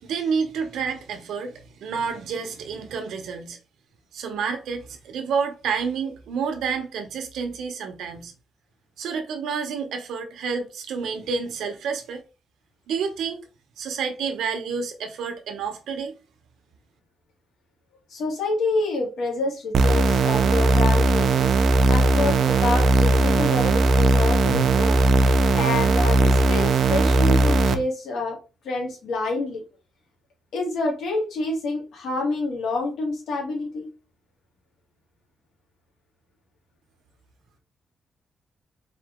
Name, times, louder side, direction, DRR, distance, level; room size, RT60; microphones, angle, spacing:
voice 1, 0.0-3.6 4.1-8.3 9.0-12.2 12.9-13.4 13.8-16.1, right 6 dB, 85° right, 1.0 m, -29 dB
voice 2, 18.1-21.6 21.9-25.0 25.5-28.4 28.6-29.6 30.5-33.9, left 3 dB, 70° left, 1.9 m, -27 dB
sound 1, 19.7-27.7, right 3 dB, 60° right, 0.5 m, -18 dB
4.3 x 2.9 x 3.6 m
wide cardioid pair, 170°, 0 cm